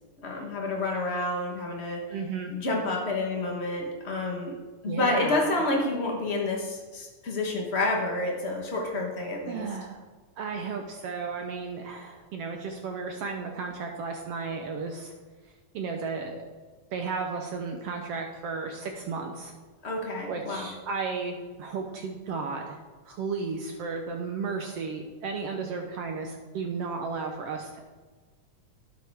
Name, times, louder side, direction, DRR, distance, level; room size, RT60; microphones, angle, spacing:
voice 1, 0.2-2.0 2.5-4.5 4.8-9.7 19.8-20.7, left 2 dB, 85° left, 0 dB, 0.5 m, -29 dB
voice 2, 2.1-2.5 4.9-5.5 9.5-10.0 10.4-15.1 15.7-16.5 16.9-19.5 20.3-22.8 23.1-27.8, right 4 dB, 70° right, 3 dB, 1.6 m, -34 dB
12.0 x 9.3 x 3.5 m, 1.4 s
omnidirectional pair, 3.4 m